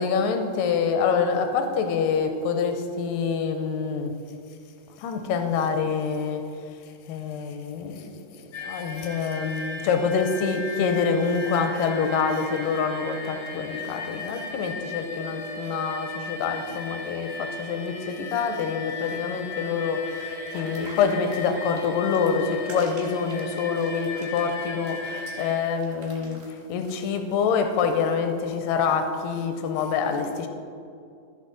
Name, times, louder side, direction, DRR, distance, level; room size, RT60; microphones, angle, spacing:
voice 1, 0.0-4.1 5.0-6.4 7.1-8.3 8.6-30.5, left 5 dB, 85° left, 6 dB, 2.4 m, -26 dB
sound 1, 8.5-25.6, left 3 dB, 65° left, 1.0 m, -37 dB
sound 2, 20.5-27.0, right 3 dB, 65° right, 2.8 m, -48 dB
14.0 x 5.9 x 4.0 m, 2.4 s
omnidirectional pair, 3.9 m